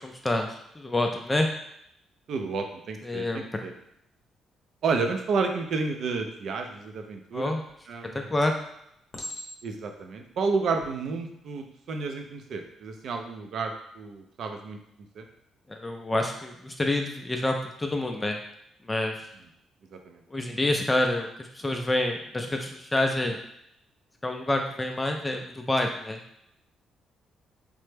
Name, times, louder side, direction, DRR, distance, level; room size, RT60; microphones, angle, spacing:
voice 1, 0.2-1.5 3.0-3.7 7.3-7.6 8.1-8.6 15.7-18.4 18.9-19.3 20.3-23.4 24.2-26.2, left 1 dB, 15° left, 3 dB, 0.3 m, -27 dB
voice 2, 2.3-3.7 4.8-7.5 7.9-8.4 9.6-14.8 15.2-15.3 20.0-20.2, right 4 dB, 65° right, 5 dB, 0.4 m, -31 dB
Chink clink, 7.6-8.2 9.1-9.9 10.7-10.9, left 1 dB, 40° left, 0.7 m, -40 dB
3.2 x 2.0 x 3.2 m, 0.77 s
cardioid pair, 90°, 0 cm